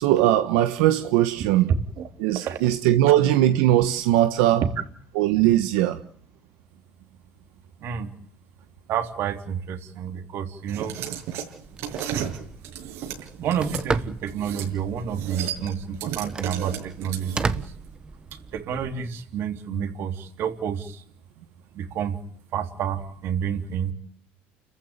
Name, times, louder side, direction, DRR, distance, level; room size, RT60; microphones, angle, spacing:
voice 1, 0.0-1.7 2.2-4.6 5.1-6.0, right 13 dB, 85° right, 1.3 m, -20 dB
voice 2, 8.9-11.0 12.1-12.3 13.2-17.7 18.5-21.0 21.7-22.2 22.5-23.9, right 8 dB, 55° right, 3.4 m, -29 dB
sound 1, 10.7-13.8 14.3-14.7 15.0-17.6, right 10 dB, 70° right, 6.7 m, -33 dB
Telephone, 11.6-18.6, right 4 dB, 20° right, 1.3 m, -34 dB
30.0 x 15.0 x 9.0 m
cardioid pair, 130°, 5 cm